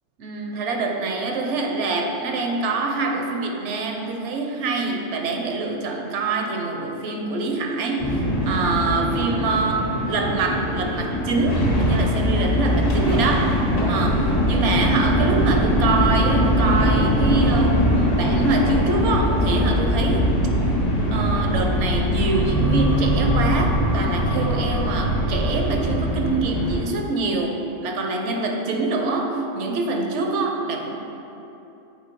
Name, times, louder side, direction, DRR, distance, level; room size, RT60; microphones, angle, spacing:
voice 1, 0.2-13.5 13.9-17.8 18.2-20.3 21.1-31.0, right 3 dB, 75° right, 2 dB, 1.0 m, -25 dB
sound 1, 8.0-26.8, equal, 80° left, 1.7 m, -21 dB
7.5 x 3.1 x 4.5 m, 2.9 s
omnidirectional pair, 1.3 m